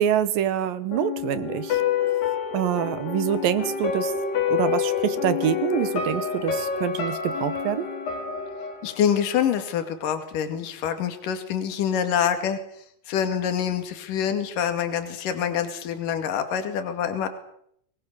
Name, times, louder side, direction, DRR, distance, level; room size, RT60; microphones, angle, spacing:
voice 1, 0.0-1.8 2.5-4.1 4.5-7.9, right 10 dB, 70° right, 13 dB, 2.6 m, -25 dB
sound 1, 0.9-9.9 10.2-10.3, left 7 dB, 90° left, 5.7 m, -28 dB
voice 2, 8.8-17.3, left 8 dB, 60° left, 8 dB, 3.6 m, -26 dB
24.5 x 21.0 x 6.8 m, 0.71 s
omnidirectional pair, 4.5 m